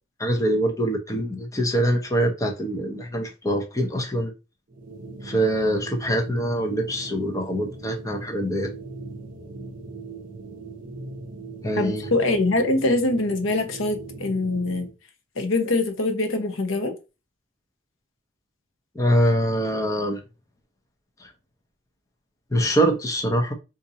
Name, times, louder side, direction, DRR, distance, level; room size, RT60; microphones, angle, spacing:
voice 1, 0.2-4.3 5.2-8.7 11.6-12.1 18.9-20.2 21.2-21.3 22.5-23.5, right 1 dB, 15° left, 0.6 m, -24 dB
sound 1, 4.7-14.9, right 3 dB, 40° right, 0.5 m, -40 dB
voice 2, 11.8-14.9 15.4-16.9, left 2 dB, 70° left, 0.7 m, -23 dB
4.1 x 2.5 x 2.7 m
head